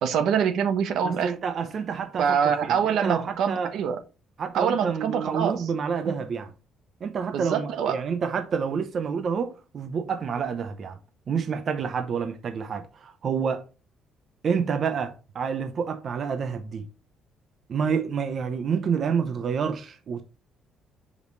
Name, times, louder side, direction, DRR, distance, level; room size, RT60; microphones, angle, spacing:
voice 1, 0.0-1.3 2.2-4.0 4.5-5.7 6.0-6.2 7.3-8.0, right 7 dB, 70° right, 0.9 m, -25 dB
voice 2, 1.0-2.4 2.7-3.7 4.4-6.5 7.0-11.0 11.3-13.6 14.4-16.9 17.7-20.2, right 6 dB, 45° right, 0.8 m, -28 dB
5.3 x 5.0 x 4.0 m
cardioid pair, 135°, 0 cm